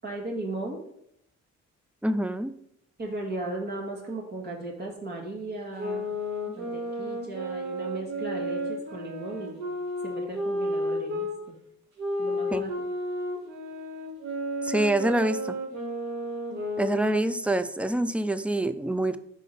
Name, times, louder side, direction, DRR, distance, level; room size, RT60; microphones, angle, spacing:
voice 1, 0.0-0.8 3.0-6.0 6.6-9.6 10.0-11.3 12.2-12.7, right 2 dB, 35° right, 0 dB, 1.9 m, -36 dB
voice 2, 2.0-2.5 12.5-12.6 14.6-15.5 16.8-19.2, right 1 dB, 5° right, 12 dB, 0.3 m, -26 dB
sound 1, 5.8-11.3 12.0-17.5, equal, 60° right, 1.7 m, -32 dB
5.0 x 3.8 x 5.4 m, 0.75 s
cardioid pair, 90°, 30 cm